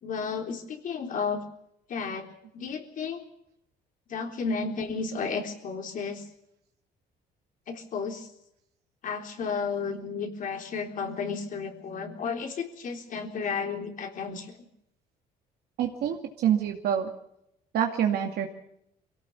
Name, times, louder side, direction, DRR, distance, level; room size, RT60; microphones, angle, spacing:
voice 1, 0.0-1.4 1.9-2.3 2.5-3.2 4.1-6.2 7.7-8.3 9.0-14.5, left 5 dB, 50° left, 4 dB, 3.8 m, -32 dB
voice 2, 15.8-17.1 17.7-18.5, right 9 dB, 70° right, 2 dB, 2.4 m, -26 dB
23.0 x 17.5 x 7.2 m, 0.77 s
cardioid pair, 110°, 17 cm